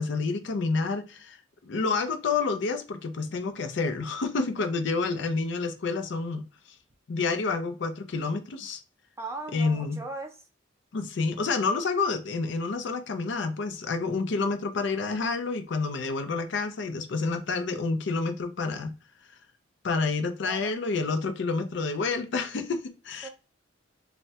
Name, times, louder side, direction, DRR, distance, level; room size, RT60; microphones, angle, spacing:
voice 1, 0.0-1.4 1.6-6.5 7.1-8.8 9.5-10.0 10.9-18.9 19.8-23.3, left 4 dB, 65° left, 0.5 m, -29 dB
voice 2, 9.2-10.4 20.4-20.7 23.2-23.3, right 3 dB, 15° right, 0.4 m, -38 dB
3.3 x 2.1 x 2.7 m
head